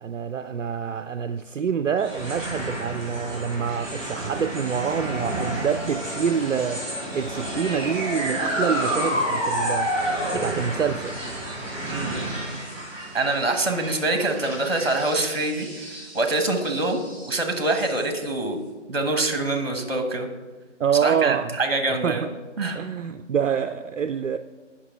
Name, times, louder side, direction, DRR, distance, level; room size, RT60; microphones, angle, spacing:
voice 1, 0.0-6.8 7.1-9.9 10.3-11.1 20.8-21.6 21.9-22.3 22.7-24.4, right 7 dB, 80° right, 9 dB, 0.5 m, -26 dB
sound 1, 2.0-18.4, right 1 dB, 5° right, 2.3 m, -30 dB
voice 2, 11.9-12.2 13.1-15.9 16.1-17.0 17.3-18.6 18.9-20.3 21.0-22.3 22.6-22.8, right 2 dB, 50° right, 6 dB, 1.3 m, -25 dB
8.2 x 5.8 x 4.8 m, 1.3 s
figure-of-eight pair, 155°, 37 cm